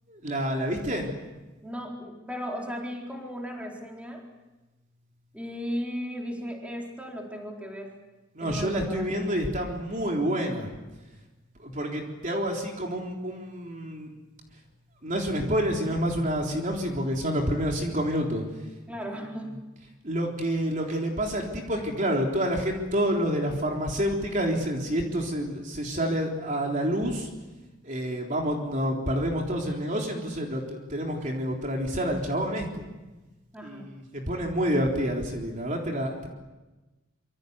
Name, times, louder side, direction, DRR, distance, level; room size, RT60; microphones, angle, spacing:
voice 1, 0.1-1.1 8.3-10.7 11.6-14.1 15.0-18.4 20.0-27.3 27.8-32.8 33.6-36.3, equal, 40° right, 1 dB, 3.8 m, -28 dB
voice 2, 1.6-4.2 5.3-7.9 8.4-9.4 18.9-19.6 33.5-33.9, equal, 5° right, 0 dB, 4.2 m, -36 dB
26.5 x 25.0 x 8.2 m, 1.2 s
head